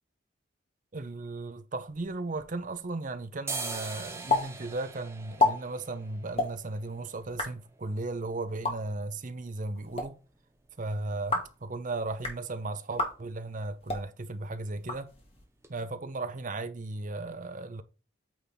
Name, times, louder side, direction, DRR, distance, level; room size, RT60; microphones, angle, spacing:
voice 1, 0.9-10.2 10.8-15.1 15.7-17.8, right 2 dB, 40° right, 0.6 m, -36 dB
sound 1, 1.9-2.9 3.3-11.0 11.3-11.4 11.7-12.2 12.5-12.8 13.0-13.3 13.5-14.3 14.6-14.8 15.3-15.4 15.6-15.7, right 3 dB, 15° right, 0.9 m, -43 dB
sound 2, 4.3-4.4 4.7-4.8 5.2-5.5 6.3-6.5 7.2-7.5 8.5-8.7 9.7-10.1 11.1-11.5 12.1-12.4 12.9-13.1 13.8-14.0 14.7-15.4, left 3 dB, 30° left, 1.7 m, -29 dB
8.6 x 3.6 x 4.0 m
head